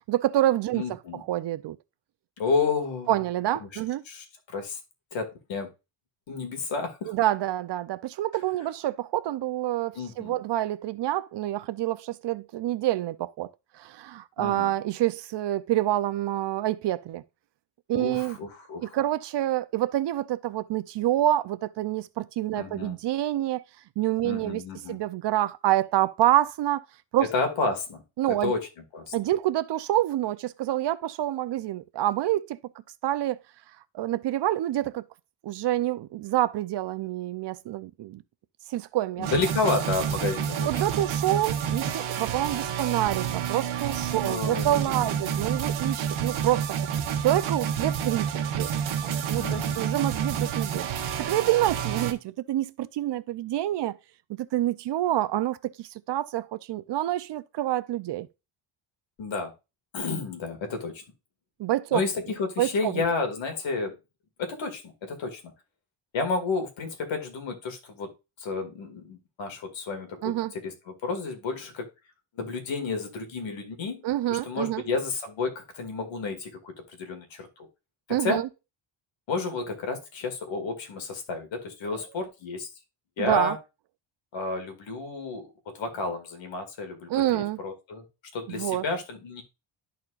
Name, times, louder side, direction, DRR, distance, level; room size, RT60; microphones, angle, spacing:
voice 1, 0.1-1.0 1.3-1.8 3.1-4.0 7.1-13.5 13.7-17.2 17.9-18.4 18.8-23.6 24.0-24.6 24.9-26.8 27.1-27.3 28.2-28.5 29.1-32.6 33.0-33.4 33.9-35.0 35.4-38.2 38.7-39.3 40.7-46.8 47.2-48.3 48.5-54.0 54.4-58.3 61.6-62.0 62.6-63.0 70.2-70.5 74.0-74.8 78.1-78.5 83.2-83.6 87.1-87.6 88.5-88.8, right 14 dB, 60° right, 0.6 m, -27 dB
voice 2, 0.7-1.2 2.4-3.1 3.6-3.8 4.1-4.8 5.1-5.7 6.3-7.1 10.0-10.4 14.4-14.7 17.9-19.0 22.6-23.0 24.2-25.0 27.3-28.0 28.3-28.7 28.9-29.1 39.2-40.8 44.2-45.2 49.4-50.1 59.2-59.5 59.9-61.0 61.9-64.0 64.4-65.4 66.1-68.1 68.4-70.7 71.0-71.9 72.4-74.0 74.3-77.7 78.1-78.4 79.3-82.7 83.2-83.6 84.3-88.0 88.3-89.4, left 4 dB, 70° left, 2.1 m, -31 dB
sound 1, 39.2-52.1, right 8 dB, 90° right, 1.2 m, -29 dB
12.0 x 4.3 x 2.4 m
cardioid pair, 120°, 47 cm